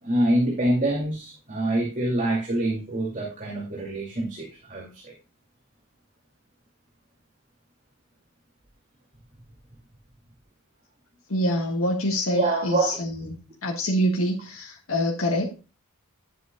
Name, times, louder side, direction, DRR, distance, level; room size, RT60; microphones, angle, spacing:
voice 1, 0.0-5.1 12.3-13.0, right 1 dB, 35° right, -2 dB, 2.5 m, -25 dB
voice 2, 11.3-15.5, equal, 70° left, -1 dB, 1.6 m, -26 dB
11.0 x 8.1 x 2.3 m, 0.32 s
head